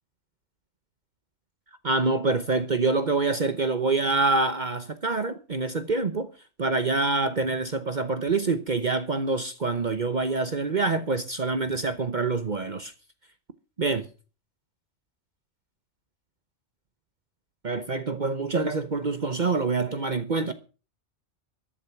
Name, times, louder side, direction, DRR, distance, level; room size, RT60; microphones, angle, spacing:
voice 1, 1.8-6.3 6.6-12.9 13.8-14.1 17.6-20.5, right 3 dB, 40° right, 1.0 m, -26 dB
14.0 x 11.5 x 5.8 m
omnidirectional pair, 1.3 m